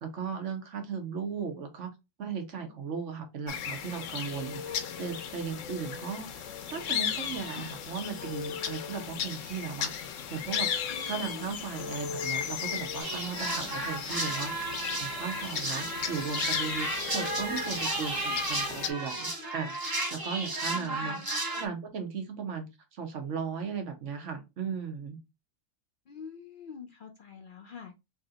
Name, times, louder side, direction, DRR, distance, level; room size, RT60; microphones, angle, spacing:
voice 1, 0.0-1.9 2.2-9.9 10.3-14.7 15.0-19.7 20.1-21.2 21.5-25.2, right 6 dB, 70° right, 1.2 m, -37 dB
sound 1, 3.5-18.9, left 8 dB, 80° left, 1.0 m, -36 dB
voice 2, 10.9-11.6 20.7-21.2 26.1-28.0, left 6 dB, 60° left, 0.6 m, -46 dB
sound 2, 13.0-21.7, right 2 dB, 20° right, 0.8 m, -33 dB
3.3 x 2.7 x 3.8 m
omnidirectional pair, 1.3 m